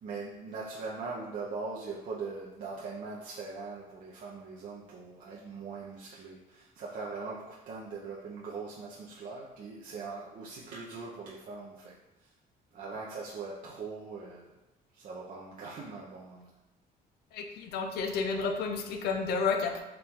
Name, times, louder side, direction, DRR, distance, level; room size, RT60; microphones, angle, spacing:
voice 1, 0.0-11.9 12.2-12.3 12.7-14.5 14.9-16.5, right 4 dB, 50° right, -5 dB, 0.6 m, -41 dB
voice 2, 17.3-19.8, left 5 dB, 75° left, 4 dB, 0.5 m, -31 dB
4.5 x 2.5 x 3.5 m, 0.98 s
cardioid pair, 110°, 17 cm